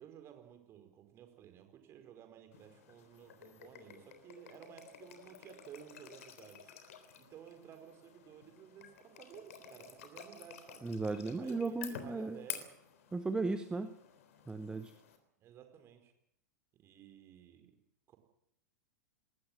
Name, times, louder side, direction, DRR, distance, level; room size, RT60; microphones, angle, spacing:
voice 1, 0.0-6.6 7.2-10.9 11.4-12.7 15.4-16.1 16.7-17.7 18.1-18.2, right 10 dB, 30° right, 6 dB, 5.1 m, -54 dB
sound 1, 2.5-15.2, left 8 dB, 55° left, 3.6 m, -51 dB
voice 2, 10.8-12.4 13.1-13.9 14.5-14.9, right 3 dB, 10° right, 11 dB, 1.1 m, -36 dB
21.0 x 18.0 x 7.7 m, 0.73 s
figure-of-eight pair, 95°, 9 cm